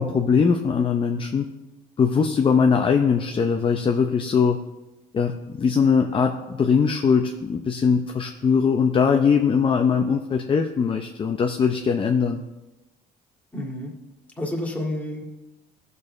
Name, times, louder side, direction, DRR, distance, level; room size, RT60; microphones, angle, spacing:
voice 1, 0.0-1.5 2.0-4.6 5.1-12.4, left 6 dB, 30° left, 3 dB, 0.7 m, -21 dB
voice 2, 13.5-13.9 14.4-15.2, left 1 dB, 10° left, -1 dB, 2.1 m, -29 dB
16.0 x 6.8 x 3.3 m, 1.1 s
cardioid pair, 110°, 17 cm